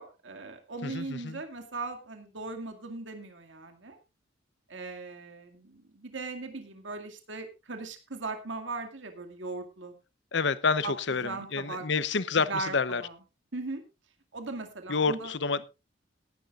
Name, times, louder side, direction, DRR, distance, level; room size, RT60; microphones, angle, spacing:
voice 1, 0.0-4.0 4.7-9.9 10.8-10.9 11.2-11.9 12.5-13.2 13.5-13.8 14.3-15.3, right 3 dB, 75° right, 2.2 m, -38 dB
voice 2, 0.8-1.4 10.3-13.0 14.9-15.7, left 4 dB, 65° left, 0.8 m, -28 dB
19.0 x 11.0 x 2.5 m
head